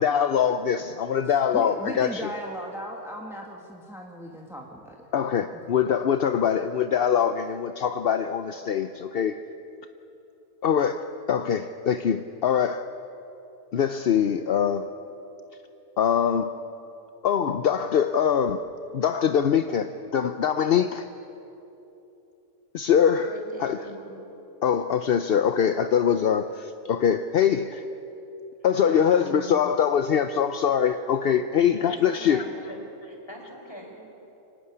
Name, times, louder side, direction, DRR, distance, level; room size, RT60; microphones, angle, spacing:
voice 1, 0.0-2.3 5.1-9.4 10.6-12.9 13.7-14.9 16.0-16.5 17.2-18.6 18.9-21.1 22.7-23.8 24.6-27.8 28.6-32.4, left 8 dB, 55° left, 9 dB, 0.7 m, -23 dB
voice 2, 1.5-5.0 5.5-5.6, equal, ahead, 0 dB, 1.7 m, -37 dB
voice 3, 23.2-24.1 28.8-29.7 31.5-32.8 33.0-34.0, equal, 15° left, 0 dB, 4.7 m, -41 dB
25.0 x 17.5 x 9.8 m, 2.9 s
omnidirectional pair, 1.6 m